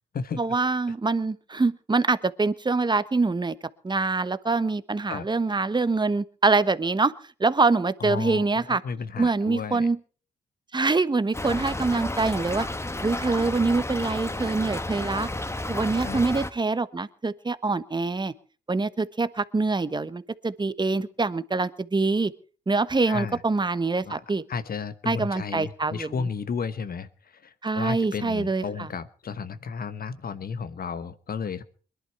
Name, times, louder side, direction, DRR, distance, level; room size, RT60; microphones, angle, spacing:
voice 1, 0.4-3.5 3.8-7.1 7.4-8.8 9.2-10.0 10.7-12.7 13.0-15.3 15.7-18.3 18.7-22.3 22.7-24.4 25.1-26.3 27.6-28.9, right 3 dB, 25° right, 14 dB, 1.1 m, -25 dB
voice 2, 8.0-9.9 16.0-16.2 23.1-23.4 24.0-24.2 24.5-31.6, left 5 dB, 55° left, 13 dB, 1.2 m, -33 dB
Stream / Trickle dribble, 11.3-16.5, left 1 dB, 15° left, 1.4 m, -32 dB
21.5 x 11.5 x 4.7 m, 0.42 s
supercardioid pair, 50°, 18 cm